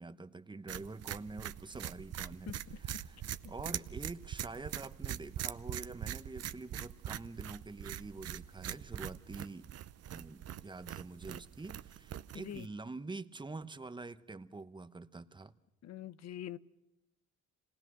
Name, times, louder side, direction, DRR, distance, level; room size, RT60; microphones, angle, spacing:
voice 1, 0.0-9.7 10.1-15.5, right 3 dB, 15° right, 11 dB, 0.9 m, -46 dB
sound 1, 0.7-12.7, right 11 dB, 55° right, 0.7 m, -43 dB
voice 2, 2.5-3.0 12.3-12.7 15.8-16.6, left 11 dB, 60° left, 16 dB, 0.8 m, -45 dB
27.0 x 19.0 x 6.2 m, 0.90 s
cardioid pair, 90°, 30 cm